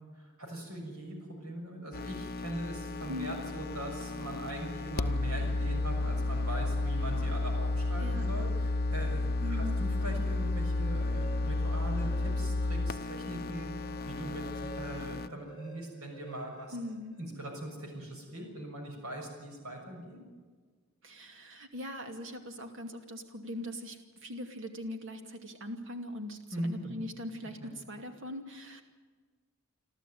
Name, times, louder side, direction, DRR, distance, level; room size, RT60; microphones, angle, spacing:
voice 1, 0.1-16.8 17.2-20.2 26.5-27.0 27.6-27.7, right 1 dB, 85° right, 2 dB, 6.4 m, -41 dB
sound 1, 1.9-15.3, left 2 dB, 45° left, 0.8 m, -32 dB
voice 2, 3.1-3.4 8.0-8.2 9.4-9.8 16.7-17.2 21.0-28.8, left 1 dB, 60° right, 6 dB, 2.6 m, -41 dB
sound 2, 10.2-12.8 13.2-17.6, right 6 dB, 20° left, 2.3 m, -52 dB
27.0 x 13.5 x 9.4 m, 1.5 s
head